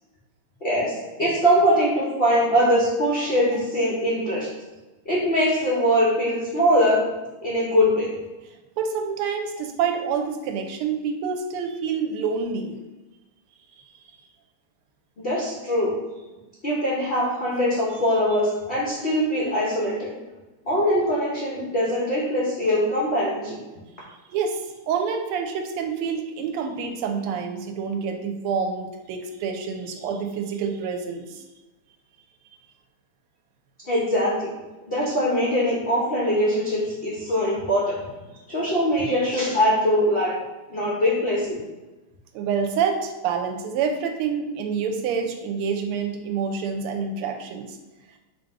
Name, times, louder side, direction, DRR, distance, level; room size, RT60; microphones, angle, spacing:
voice 1, 0.6-4.5 5.1-7.0 7.4-8.1 15.2-15.9 16.6-20.1 20.6-23.6 33.9-34.5 34.9-38.0 38.5-40.3 40.7-41.6, equal, 75° left, -6 dB, 0.5 m, -22 dB
voice 2, 8.8-12.7 24.3-31.4 42.3-47.8, right 6 dB, 85° right, 5 dB, 1.5 m, -27 dB
3.4 x 2.7 x 4.6 m, 1.1 s
omnidirectional pair, 2.4 m